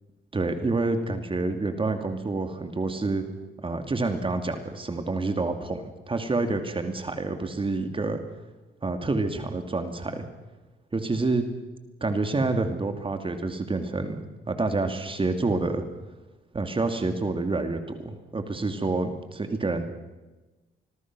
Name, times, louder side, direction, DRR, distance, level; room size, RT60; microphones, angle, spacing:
voice 1, 0.3-3.2 3.6-8.2 8.8-10.2 10.9-11.5 12.0-15.8 16.5-19.9, right 3 dB, 25° right, 7 dB, 2.7 m, -28 dB
26.0 x 20.5 x 6.3 m, 1.1 s
cardioid pair, 90°, 20 cm